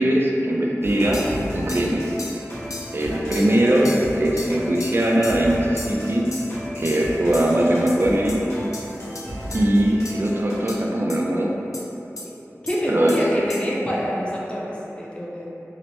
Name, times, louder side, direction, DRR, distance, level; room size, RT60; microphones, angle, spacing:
voice 1, 0.0-2.0 2.9-6.3 6.8-8.4 9.5-11.6 12.9-13.5, right 1 dB, 45° right, -2 dB, 0.4 m, -21 dB
sound 1, 0.8-10.5, equal, 55° left, 0.9 m, -34 dB
sound 2, 1.1-1.3 1.7-1.9 2.2-2.4 2.7-2.9 3.3-3.5 3.8-4.0 4.4-4.5 4.8-4.9 5.2-5.4 5.8-6.0 6.3-6.5 6.8-7.0 7.3-7.5 7.9-8.0 8.3-8.4 8.7-8.8 9.1-9.2 9.5-9.6 10.0-10.1 10.7-10.8 11.1-11.2 11.7-11.8 12.2-12.3 12.7-12.8 13.1-13.2 13.5-13.6, left 2 dB, 80° left, 0.3 m, -35 dB
voice 2, 3.1-3.4 12.6-15.5, equal, 20° left, -6 dB, 0.5 m, -27 dB
2.8 x 2.0 x 3.0 m, 3.0 s
wide cardioid pair, 55°, 5 cm